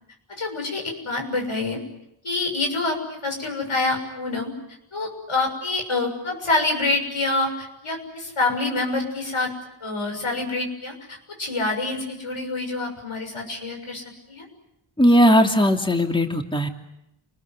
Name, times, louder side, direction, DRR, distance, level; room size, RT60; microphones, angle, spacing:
voice 1, 0.3-1.8 2.2-4.5 4.9-9.5 9.8-14.5, left 2 dB, 85° left, 3 dB, 6.9 m, -26 dB
voice 2, 15.0-16.7, equal, 10° left, 3 dB, 2.8 m, -18 dB
29.0 x 21.0 x 9.6 m, 0.84 s
wide cardioid pair, 50°, 48 cm